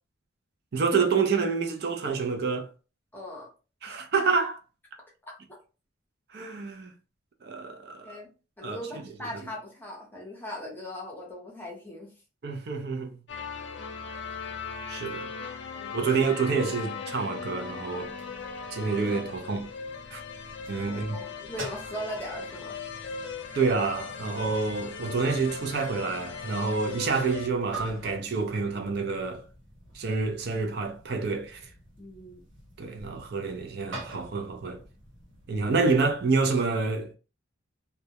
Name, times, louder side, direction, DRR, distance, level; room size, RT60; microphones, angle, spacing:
voice 1, 0.7-2.7 3.8-4.6 6.3-6.9 7.4-8.1 8.6-8.8 12.4-13.1 14.9-15.3 15.9-18.1 18.7-19.7 20.1-20.2 20.7-21.2 23.5-29.4 29.9-31.7 32.8-34.8 35.5-37.1, right 4 dB, 50° right, 0.4 m, -28 dB
voice 2, 3.1-3.5 3.8-4.0 5.5-5.6 8.0-8.3 8.6-12.1 15.8-16.3 20.8-22.8 32.0-32.4, left 1 dB, 10° left, 0.7 m, -39 dB
sound 1, 13.3-27.5, left 5 dB, 60° left, 0.5 m, -39 dB
sound 2, 17.9-36.3, right 2 dB, 80° right, 0.8 m, -47 dB
2.2 x 2.0 x 2.7 m
head